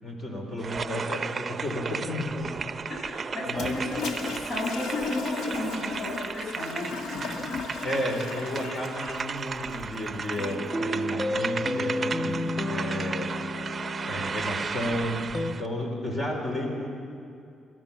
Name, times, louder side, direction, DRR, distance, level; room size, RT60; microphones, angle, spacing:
voice 1, 0.0-2.5 3.0-3.1 3.5-3.8 7.8-13.3 14.0-16.9, left 1 dB, 35° left, 1 dB, 4.4 m, -32 dB
sound 1, 0.6-15.7, right 5 dB, 35° right, 0.7 m, -35 dB
voice 2, 2.9-6.9, left 1 dB, 55° left, -1 dB, 7.4 m, -34 dB
Toilet flush, 3.5-10.7, left 4 dB, 75° left, 2.1 m, -35 dB
sound 2, 10.4-15.5, left 1 dB, 15° left, 1.0 m, -32 dB
29.5 x 13.0 x 7.4 m, 2.5 s
cardioid pair, 90°, 0 cm